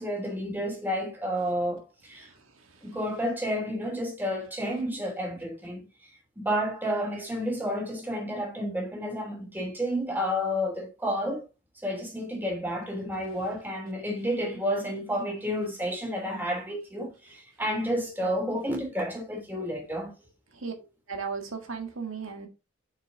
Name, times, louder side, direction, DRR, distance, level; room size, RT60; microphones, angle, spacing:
voice 1, 0.0-2.3 2.8-5.9 6.4-11.4 11.8-20.1, equal, 10° right, 3.1 m, -30 dB
voice 2, 21.1-22.5, right 5 dB, 80° right, 1.7 m, -35 dB
6.9 x 6.7 x 4.0 m
head